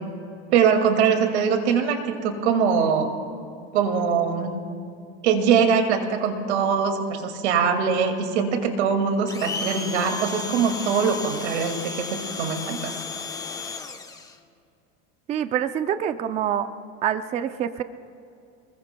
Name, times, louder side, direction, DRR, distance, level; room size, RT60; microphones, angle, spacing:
voice 1, 0.5-3.1 3.7-4.5 5.2-12.9, right 6 dB, 90° right, 5 dB, 2.3 m, -22 dB
Domestic sounds home sounds, 9.3-14.4, left 4 dB, 10° left, 0.9 m, -34 dB
voice 2, 15.3-16.7 17.0-17.8, right 9 dB, 20° right, 10 dB, 0.4 m, -26 dB
29.0 x 20.5 x 2.2 m, 2.5 s
supercardioid pair, 145°, 33 cm